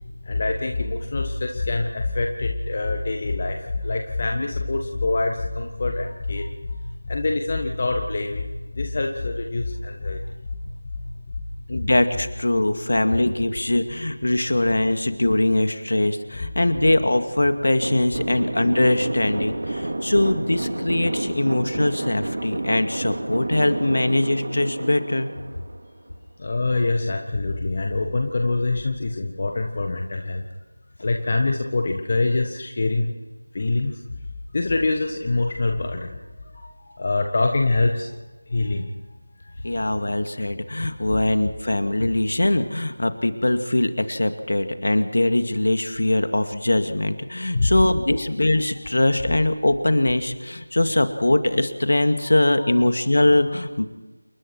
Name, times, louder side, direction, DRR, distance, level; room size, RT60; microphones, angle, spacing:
voice 1, 0.2-6.5 6.8-10.3 10.6-10.7 11.0-11.2 26.4-30.4 31.0-33.1 33.5-33.9 34.5-36.2 36.5-36.7 37.0-38.1 38.5-38.9 39.6-39.9 47.5-47.7 52.7-52.8, left 2 dB, 30° left, 3 dB, 1.5 m, -25 dB
voice 2, 11.7-25.3 39.6-53.8, left 1 dB, 50° left, 8 dB, 2.2 m, -22 dB
sound 1, 17.8-26.1, right 2 dB, 40° right, 2.3 m, -30 dB
28.5 x 21.5 x 4.6 m, 1.2 s
figure-of-eight pair, 170°, 0 cm